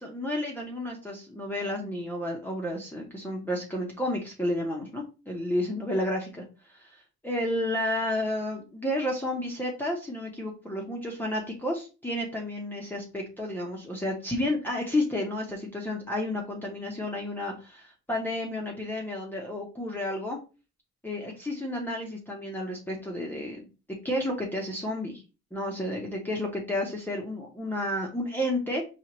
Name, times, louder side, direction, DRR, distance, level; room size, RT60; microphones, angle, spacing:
voice 1, 0.0-6.4 6.7-20.4 21.0-23.7 24.0-25.2 25.5-28.8, left 1 dB, 5° left, -2 dB, 0.9 m, -31 dB
4.5 x 2.4 x 2.9 m, 0.32 s
cardioid pair, 90°, 30 cm